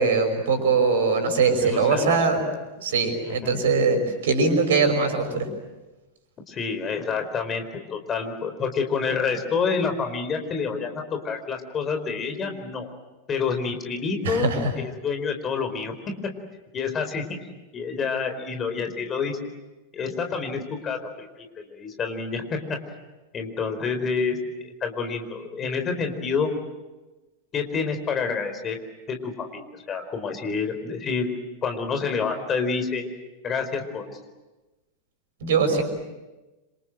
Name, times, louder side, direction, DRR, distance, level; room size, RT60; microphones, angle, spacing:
voice 1, 0.0-2.4 2.8-5.5 14.2-14.7 35.4-35.8, right 4 dB, 60° right, 6 dB, 5.6 m, -21 dB
voice 2, 1.6-2.1 3.2-3.6 6.5-7.6 7.9-12.9 13.3-14.5 14.8-16.0 16.7-17.2 17.7-19.4 19.9-22.8 23.3-24.4 24.6-26.5 27.5-28.8 29.1-31.3 31.6-33.0 33.4-34.2, left 5 dB, 25° left, 6 dB, 4.5 m, -28 dB
27.5 x 26.5 x 7.9 m, 1.1 s
figure-of-eight pair, 90°, 0 cm